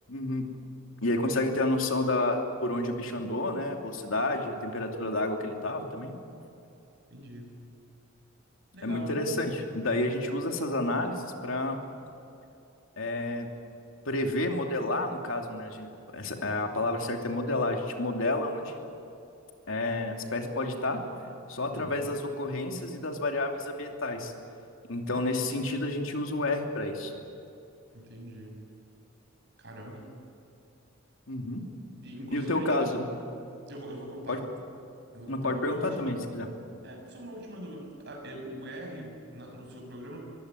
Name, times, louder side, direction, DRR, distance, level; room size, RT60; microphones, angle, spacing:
voice 1, 0.1-0.5 1.0-6.1 8.8-11.8 13.0-13.5 14.0-18.8 19.7-21.0 21.5-24.3 24.9-27.1 31.3-31.6 32.3-33.1 34.3-34.4 35.3-36.5, left 2 dB, 90° left, 3 dB, 2.8 m, -30 dB
voice 2, 7.1-7.6 8.7-9.2 21.7-22.1 27.9-28.5 29.6-30.1 32.0-32.9 33.7-34.4 35.1-36.1 36.8-40.4, right 1 dB, 60° right, 1 dB, 6.8 m, -42 dB
23.0 x 16.0 x 9.7 m, 2.7 s
head